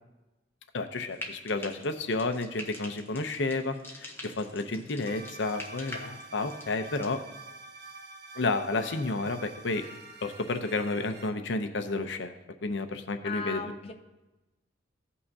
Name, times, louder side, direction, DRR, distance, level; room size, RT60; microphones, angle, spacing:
voice 1, 0.7-7.2 8.4-9.8 10.2-12.3 12.6-13.6, left 3 dB, 65° left, 8 dB, 0.7 m, -31 dB
Frying (food), 1.1-7.1, left 2 dB, 10° left, 1.0 m, -45 dB
sound 1, 5.0-11.3, right 3 dB, 55° right, 1.0 m, -47 dB
voice 2, 13.2-13.9, left 3 dB, 30° left, 2 dB, 0.6 m, -36 dB
16.5 x 5.5 x 2.8 m, 1.1 s
head